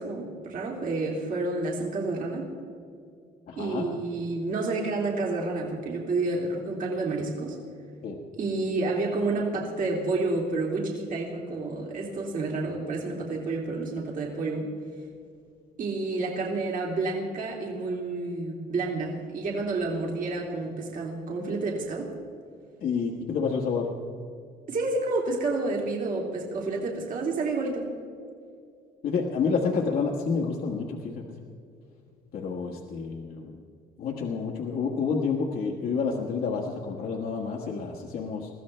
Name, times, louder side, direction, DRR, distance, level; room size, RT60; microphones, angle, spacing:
voice 1, 0.0-2.5 3.6-7.6 8.3-14.7 15.8-22.1 24.7-27.9, right 3 dB, 55° right, -1 dB, 2.9 m, -29 dB
voice 2, 3.5-3.9 8.0-8.2 22.8-23.9 29.0-31.2 32.3-33.6 34.0-38.5, left 5 dB, 60° left, -1 dB, 1.5 m, -29 dB
22.0 x 15.0 x 3.3 m, 2.4 s
cardioid pair, 110°, 17 cm